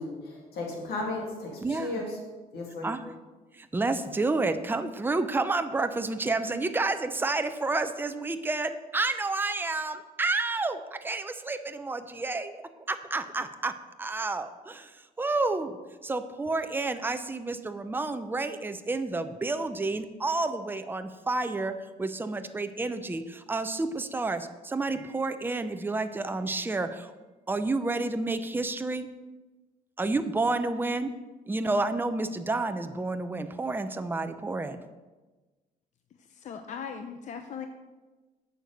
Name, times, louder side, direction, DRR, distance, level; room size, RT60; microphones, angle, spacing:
voice 1, 0.0-2.2 2.5-2.9, left 2 dB, 90° left, -1 dB, 2.8 m, -35 dB
voice 2, 1.6-2.0 2.8-3.0 3.5-12.6 12.9-15.8 16.0-27.1 27.5-29.1 30.0-31.1 31.5-34.8, right 3 dB, 15° right, 9 dB, 0.6 m, -30 dB
voice 3, 36.3-37.7, left 6 dB, 50° left, 6 dB, 0.7 m, -39 dB
8.8 x 6.7 x 6.6 m, 1.2 s
cardioid pair, 130°, 16 cm